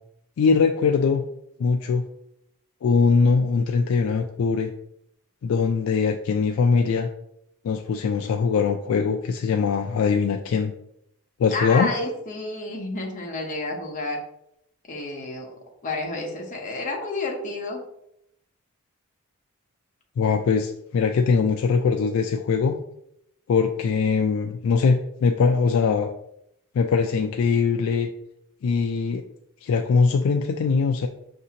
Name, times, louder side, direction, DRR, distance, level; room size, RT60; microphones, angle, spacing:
voice 1, 0.4-1.2 1.6-2.0 2.8-4.7 5.4-7.1 7.6-10.7 11.4-11.9 20.2-22.8 23.5-26.1 26.7-28.1 28.6-29.2 29.6-31.1, left 5 dB, 65° left, 4 dB, 0.3 m, -21 dB
voice 2, 11.5-14.2 14.9-15.5 15.8-17.8, left 2 dB, 35° left, 0 dB, 0.8 m, -30 dB
5.8 x 2.7 x 2.8 m, 0.76 s
head